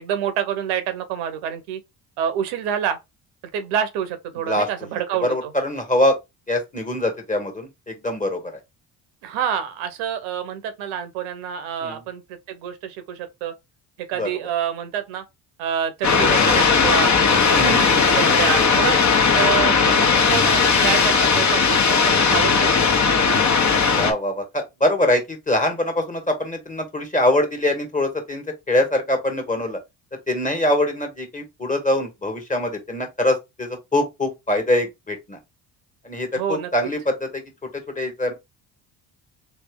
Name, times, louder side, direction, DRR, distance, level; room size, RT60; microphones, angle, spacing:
voice 1, 0.0-1.8 2.2-3.0 3.5-5.5 9.2-13.5 14.1-15.2 15.6-17.1 17.5-19.0 19.3-22.9 36.3-36.7, right 9 dB, 80° right, 0.9 m, -27 dB
voice 2, 5.2-6.2 6.5-8.4 11.8-12.0 14.1-14.3 17.5-17.9 23.9-29.8 30.3-35.4 36.0-37.4 37.9-38.3, left 1 dB, 15° left, 1.6 m, -23 dB
sound 1, 16.0-24.1, left 5 dB, 35° left, 1.1 m, -17 dB
3.1 x 2.8 x 3.5 m
hypercardioid pair, 55°, 48 cm